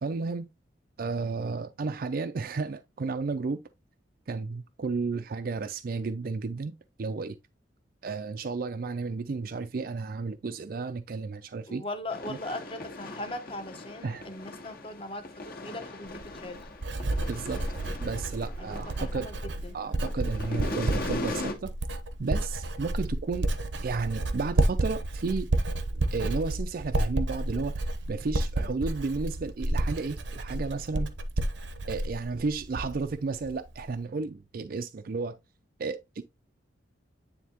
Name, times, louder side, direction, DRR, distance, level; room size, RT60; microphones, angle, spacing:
voice 1, 0.0-0.5 1.0-3.6 4.3-7.4 8.0-11.8 12.3-12.4 14.0-14.3 17.3-17.6 18.0-19.3 19.7-21.7 22.2-23.5 23.8-25.5 26.1-31.1 31.9-35.4 35.8-36.2, right 4 dB, 50° right, 0.4 m, -33 dB
voice 2, 11.7-16.6 18.6-19.8, left 1 dB, 30° left, 1.0 m, -39 dB
sound 1, 12.1-19.6 19.9-21.5, left 2 dB, 50° left, 1.4 m, -39 dB
Writing, 16.1-33.1 33.4-33.9, right 2 dB, 75° right, 0.8 m, -31 dB
9.3 x 3.6 x 2.9 m
head